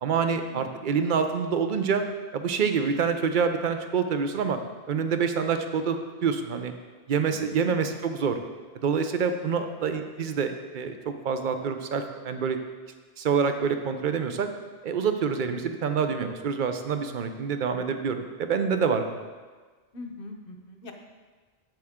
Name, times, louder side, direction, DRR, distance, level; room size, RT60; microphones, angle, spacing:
voice 1, 0.0-2.0 2.3-4.6 4.9-6.7 7.1-8.4 8.7-12.6 13.2-14.5 14.8-19.2, right 6 dB, 55° right, 7 dB, 0.8 m, -26 dB
voice 2, 0.5-0.9 7.6-7.9 9.8-10.0 19.9-20.9, left 2 dB, 60° left, 4 dB, 1.1 m, -42 dB
9.1 x 7.7 x 3.6 m, 1.4 s
omnidirectional pair, 1.1 m